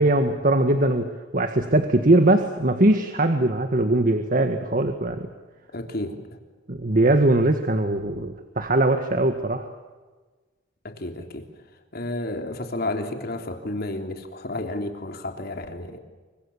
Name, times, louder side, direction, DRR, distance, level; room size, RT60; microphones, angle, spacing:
voice 1, 0.0-5.3 6.7-9.7, right 1 dB, 45° right, 7 dB, 1.7 m, -21 dB
voice 2, 5.7-6.4 10.8-11.4 11.9-16.0, left 2 dB, 55° left, 5 dB, 3.4 m, -31 dB
28.5 x 24.5 x 7.3 m, 1.3 s
head